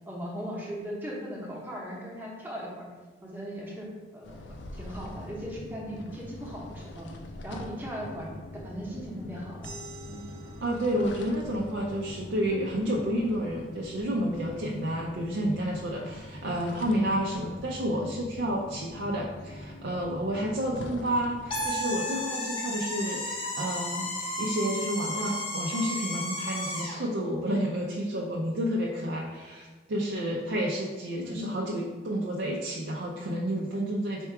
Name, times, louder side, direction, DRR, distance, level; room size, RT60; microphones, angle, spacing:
voice 1, 0.1-2.9 3.2-4.4 4.7-7.1 7.4-8.3 8.6-9.7 10.1-10.2 12.5-12.6 17.9-18.1 21.7-21.9 31.2-31.4, equal, 10° right, -4 dB, 0.8 m, -38 dB
sound 1, 4.2-21.7, left 1 dB, 70° left, 0.4 m, -43 dB
sound 2, 9.6-14.8, right 2 dB, 50° right, 0.8 m, -51 dB
voice 2, 10.6-34.3, equal, 75° right, -3 dB, 0.5 m, -30 dB
sound 3, 21.5-27.1, left 1 dB, 30° left, 0.6 m, -33 dB
4.5 x 2.3 x 4.5 m, 1.4 s
head